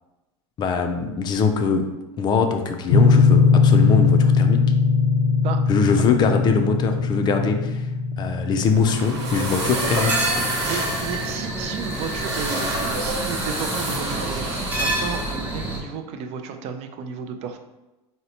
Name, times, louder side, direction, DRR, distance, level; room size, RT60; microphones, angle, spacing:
voice 1, 0.6-4.7 5.7-7.9 8.2-10.2, left 5 dB, 30° left, 6 dB, 0.4 m, -22 dB
sound 1, 2.9-11.6, left 4 dB, 90° left, 0.6 m, -20 dB
sound 2, 8.5-15.4, right 1 dB, 85° right, 1.0 m, -29 dB
sound 3, 9.6-15.8, right 1 dB, 10° right, 0.7 m, -29 dB
voice 2, 10.6-17.6, right 6 dB, 50° right, 7 dB, 0.4 m, -33 dB
3.9 x 2.1 x 2.8 m, 1.0 s
supercardioid pair, 120°, 14 cm